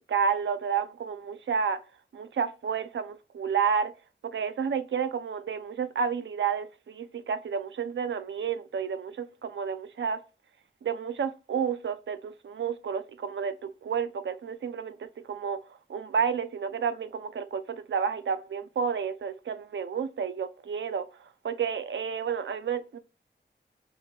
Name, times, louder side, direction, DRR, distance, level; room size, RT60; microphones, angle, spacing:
voice 1, 0.1-1.8 2.1-3.9 4.2-10.2 10.8-15.6 15.9-21.1 21.4-23.0, right 6 dB, 85° right, 0.5 m, -30 dB
5.4 x 2.6 x 2.3 m
wide cardioid pair, 70°, 19 cm